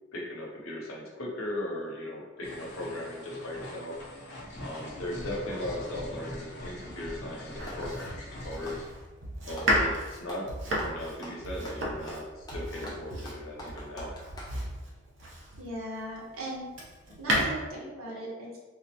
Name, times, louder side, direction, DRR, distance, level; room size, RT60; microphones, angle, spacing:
voice 1, 0.1-3.9 4.6-8.8 9.5-10.5 10.8-14.1, left 1 dB, 85° left, -2 dB, 0.8 m, -38 dB
sound 1, 2.4-8.9, left 1 dB, 55° left, 0.7 m, -42 dB
Domestic sounds home sounds, 7.6-15.7 16.3-17.4, equal, 60° right, 0.6 m, -33 dB
Clapping, 7.7-7.9 8.5-9.8 10.2-10.5 10.8-14.6, equal, 20° left, 0.5 m, -44 dB
voice 2, 15.6-16.7 17.2-18.6, right 1 dB, 90° right, -4 dB, 0.9 m, -38 dB
3.6 x 2.1 x 2.9 m, 1.2 s
head